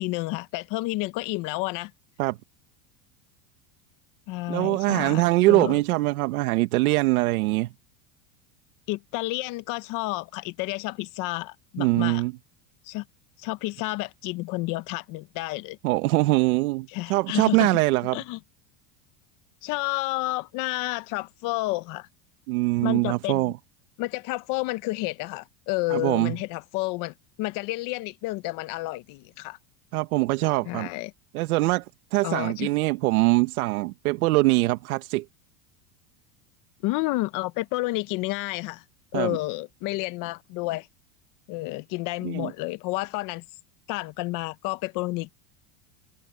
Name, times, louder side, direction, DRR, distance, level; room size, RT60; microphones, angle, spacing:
voice 1, 0.0-1.9 4.3-5.8 8.9-12.2 12.8-13.0 13.4-15.8 16.9-17.7 18.1-18.4 19.6-22.1 22.8-23.5 24.0-29.6 30.7-31.1 32.2-32.7 36.8-38.8 39.1-40.9 41.5-43.4 43.9-45.3, left 21 dB, 50° left, 0.8 m, -30 dB
voice 2, 4.5-7.7 11.8-12.3 15.8-18.2 22.5-23.5 25.9-26.3 29.9-30.9 31.3-31.8 32.1-35.2 39.1-39.4 42.2-42.5, right 20 dB, 90° right, 1.2 m, -23 dB
supercardioid pair, 150°, 43 cm